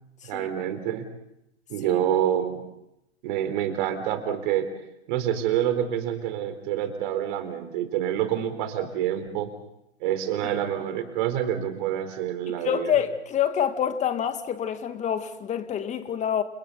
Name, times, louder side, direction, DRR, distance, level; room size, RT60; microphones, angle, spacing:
voice 1, 0.2-1.0 1.7-2.6 3.2-4.7 5.1-9.5 10.0-12.9, right 10 dB, 45° right, 4.2 m, -27 dB
voice 2, 12.5-16.4, left 9 dB, 20° left, 2.1 m, -27 dB
30.0 x 30.0 x 4.1 m
hypercardioid pair, 115°, 33 cm